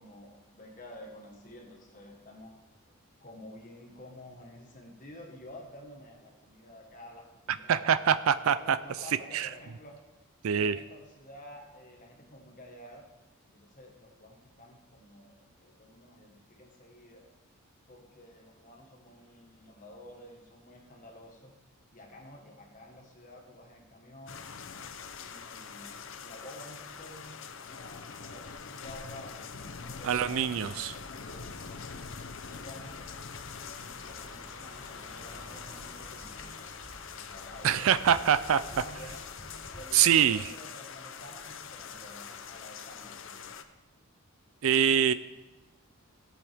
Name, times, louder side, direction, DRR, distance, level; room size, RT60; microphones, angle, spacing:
voice 1, 0.0-2.6 3.2-7.9 8.4-9.9 10.6-13.1 13.5-17.3 17.9-21.5 21.9-24.5 25.2-31.6 32.4-36.9 37.2-39.2 39.7-43.3, left 1 dB, 35° left, 1 dB, 1.6 m, -50 dB
voice 2, 7.7-8.8 9.3-9.5 10.4-10.8 30.0-30.9 37.6-38.6 39.9-40.5 44.6-45.1, right 8 dB, 70° right, 14 dB, 0.4 m, -24 dB
sound 1, 24.3-43.6, left 6 dB, 60° left, 0.6 m, -44 dB
sound 2, 30.9-40.4, equal, 35° right, 2.1 m, -51 dB
15.5 x 8.4 x 3.6 m, 1.1 s
head